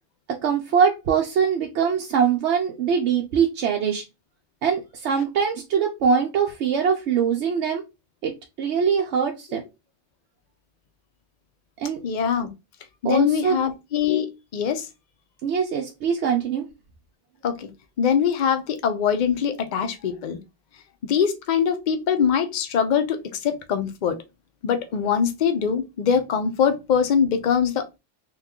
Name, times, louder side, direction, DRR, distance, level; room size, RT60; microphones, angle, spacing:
voice 1, 0.3-4.0 4.6-7.8 8.2-9.6 11.8-12.0 13.0-13.7 15.4-16.7, right 7 dB, 75° right, 0.9 m, -23 dB
voice 2, 12.0-12.5 13.0-14.9 17.4-17.7 18.0-20.4 21.0-24.2 24.6-28.0, left 7 dB, 50° left, 0.6 m, -23 dB
3.0 x 2.3 x 3.5 m
omnidirectional pair, 1.2 m